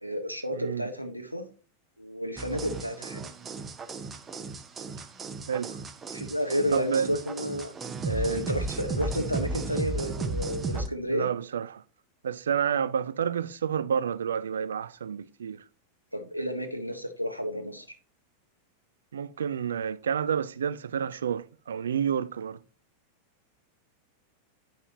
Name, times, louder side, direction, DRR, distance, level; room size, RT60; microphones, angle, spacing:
voice 1, 0.0-1.5 2.0-3.3 6.1-7.7 8.0-11.3 16.1-17.9, equal, 90° right, 0.8 m, -31 dB
voice 2, 0.5-0.9 5.5-5.8 6.7-7.2 11.1-11.8 12.2-15.6 19.1-22.6, right 7 dB, 65° right, 0.4 m, -29 dB
sound 1, 2.4-10.9, right 3 dB, 20° right, 0.8 m, -34 dB
8.8 x 5.5 x 2.9 m
figure-of-eight pair, 90°, 0 cm